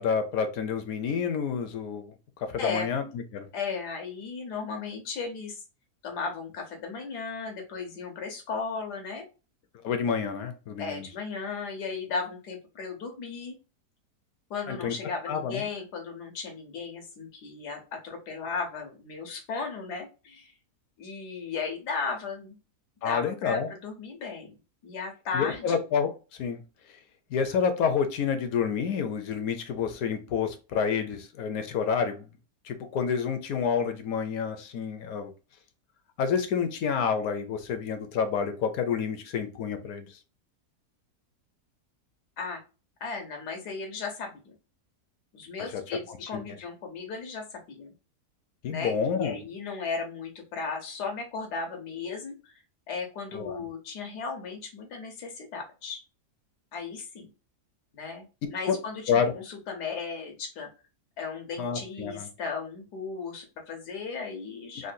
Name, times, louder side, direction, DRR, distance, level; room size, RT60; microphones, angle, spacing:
voice 1, 0.0-2.1 2.4-3.5 9.8-11.1 14.7-14.9 15.3-15.6 23.0-23.7 25.3-26.1 26.4-26.6 27.3-32.3 32.6-35.3 36.2-40.1 45.7-45.8 46.1-46.4 48.6-49.4 53.3-53.6 58.7-58.8 59.1-59.3 61.6-62.3, left 6 dB, 70° left, 8 dB, 1.0 m, -28 dB
voice 2, 3.5-5.6 6.0-9.2 10.8-13.5 14.5-20.5 21.0-22.6 23.0-24.6 24.8-25.8 42.4-42.6 43.0-44.5 45.3-47.9 48.7-52.6 52.9-56.0 56.7-57.3 57.9-58.2 58.5-60.7 61.2-64.9, left 5 dB, 85° left, 3 dB, 1.5 m, -36 dB
3.8 x 2.2 x 2.5 m, 0.32 s
omnidirectional pair, 1.7 m